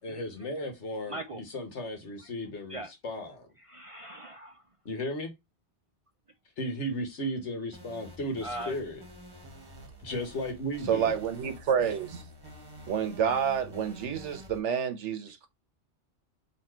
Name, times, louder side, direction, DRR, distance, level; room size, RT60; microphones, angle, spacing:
voice 1, 0.0-3.5 4.8-5.3 6.6-9.0 10.0-11.1, equal, 80° left, 1.5 m, -35 dB
voice 2, 1.1-1.4 2.7-2.9 3.6-4.6 8.4-8.8, right 1 dB, 60° right, 0.3 m, -39 dB
sound 1, 7.7-14.6, equal, 20° right, 1.1 m, -48 dB
voice 3, 10.9-12.2 12.9-15.5, right 7 dB, 80° right, 1.2 m, -29 dB
4.3 x 2.8 x 4.4 m
omnidirectional pair, 1.2 m